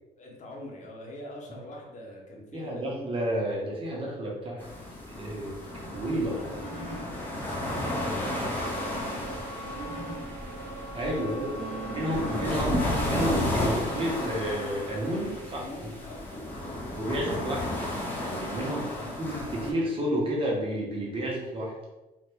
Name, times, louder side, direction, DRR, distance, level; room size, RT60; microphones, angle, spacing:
voice 1, 0.2-3.1 5.7-5.8 6.1-6.8 7.0-9.9 11.1-12.7 15.6-16.8 18.6-19.2, left 1 dB, 45° left, -1 dB, 0.9 m, -45 dB
voice 2, 2.5-4.6 5.1-5.6 5.9-6.4 10.9-11.6 11.9-15.6 17.0-17.7 18.2-18.8 19.2-21.7, right 1 dB, 30° right, -4 dB, 1.0 m, -30 dB
sound 1, 4.6-19.7, left 1 dB, 10° left, 0.7 m, -33 dB
sound 2, 5.8-7.0 7.8-10.2 11.0-13.5 14.2-15.5, right 2 dB, 65° right, 1.0 m, -40 dB
sound 3, 7.5-12.7, right 1 dB, 90° right, 0.5 m, -41 dB
2.8 x 2.5 x 3.4 m, 1.0 s
cardioid pair, 110°, 17 cm